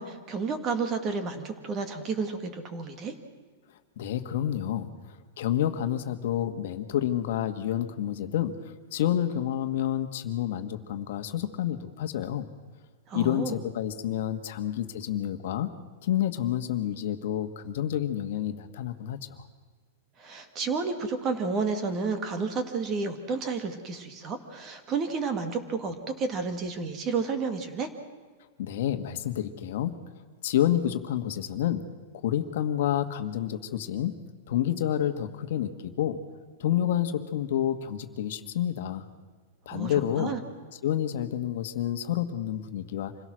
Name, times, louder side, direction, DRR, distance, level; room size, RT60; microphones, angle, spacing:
voice 1, 0.0-3.1 13.1-13.6 20.2-27.9 39.7-40.4, right 4 dB, 25° right, 8 dB, 1.9 m, -31 dB
voice 2, 4.0-12.5 13.1-15.7 16.0-19.5 28.6-29.9 30.4-31.8 32.2-34.1 34.5-36.2 36.6-39.1 39.6-40.3 40.8-43.1, left 11 dB, 60° left, 8 dB, 1.4 m, -29 dB
26.5 x 17.0 x 6.3 m, 1.5 s
supercardioid pair, 165°, 0 cm